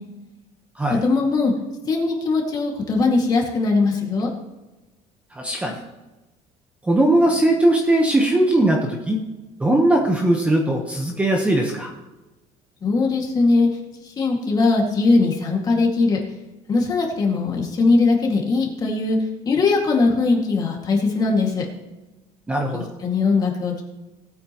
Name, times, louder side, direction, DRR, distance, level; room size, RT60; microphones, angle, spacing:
voice 1, 0.9-1.5 1.9-4.3 12.8-13.7 14.0-16.2 16.7-19.2 19.5-21.7 22.7-23.8, left 3 dB, 25° left, 0 dB, 2.1 m, -20 dB
voice 2, 5.3-5.8 6.8-9.2 9.6-11.9 22.5-22.9, right 1 dB, 10° right, 1 dB, 1.1 m, -19 dB
19.0 x 8.7 x 3.0 m, 1.1 s
cardioid pair, 175°, 15 cm